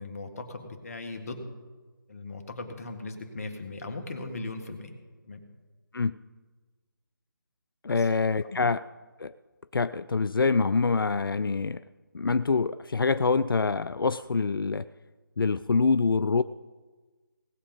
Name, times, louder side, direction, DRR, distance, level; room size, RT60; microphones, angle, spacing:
voice 1, 0.0-1.5 2.1-4.9 5.2-5.4 7.9-8.1 8.4-8.6, left 2 dB, 45° left, 5 dB, 1.8 m, -38 dB
voice 2, 7.8-8.8 9.2-9.3 9.7-11.8 12.1-14.9 15.4-16.4, left 4 dB, 80° left, 14 dB, 0.4 m, -25 dB
19.0 x 7.3 x 5.3 m, 1.3 s
figure-of-eight pair, 155°, 11 cm